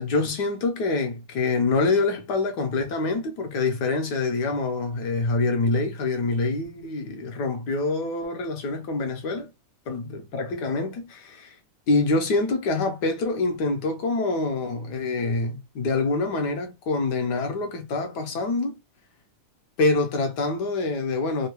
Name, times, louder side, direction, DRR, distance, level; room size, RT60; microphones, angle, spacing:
voice 1, 0.0-9.5 9.9-11.6 11.9-18.8 19.8-21.5, left 3 dB, 65° left, 1.1 m, -25 dB
3.6 x 2.2 x 3.0 m
omnidirectional pair, 2.4 m